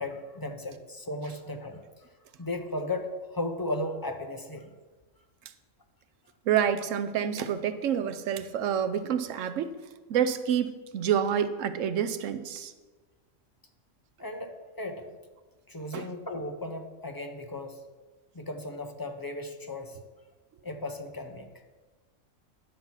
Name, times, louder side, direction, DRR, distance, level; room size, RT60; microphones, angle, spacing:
voice 1, 0.0-2.1 2.4-4.7 14.2-15.1 15.7-17.8 18.3-20.0 20.6-21.5, left 2 dB, 20° left, 5 dB, 0.6 m, -36 dB
voice 2, 6.5-9.7 10.1-12.7 15.9-16.1, right 8 dB, 80° right, 11 dB, 1.0 m, -28 dB
10.5 x 5.9 x 5.7 m, 1.3 s
omnidirectional pair, 1.3 m